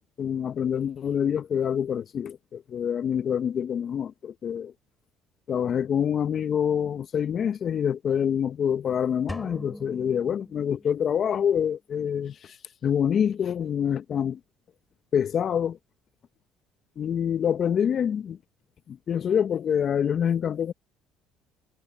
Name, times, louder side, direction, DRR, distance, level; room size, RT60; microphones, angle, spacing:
voice 1, 0.2-4.7 5.5-12.6 12.8-14.4 15.1-15.8 17.0-18.4 18.9-20.7, left 8 dB, 50° left, 1.0 m, -26 dB
sound 1, 9.3-11.3, left 1 dB, 5° left, 5.9 m, -41 dB
hypercardioid pair, 65°, 0 cm